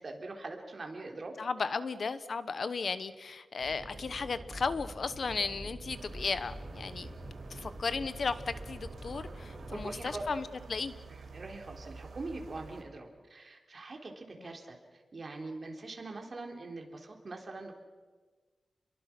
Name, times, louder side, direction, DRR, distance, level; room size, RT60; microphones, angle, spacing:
voice 1, 0.0-1.4 9.7-10.2 11.1-17.8, right 3 dB, 40° right, 2 dB, 3.5 m, -43 dB
voice 2, 1.4-10.9, left 4 dB, 55° left, 13 dB, 1.0 m, -35 dB
sound 1, 3.6-10.3, right 1 dB, 20° right, 7.5 m, -45 dB
sound 2, 5.9-12.8, right 4 dB, 80° right, 4.3 m, -50 dB
30.0 x 22.5 x 6.0 m, 1.4 s
wide cardioid pair, 130°, 0 cm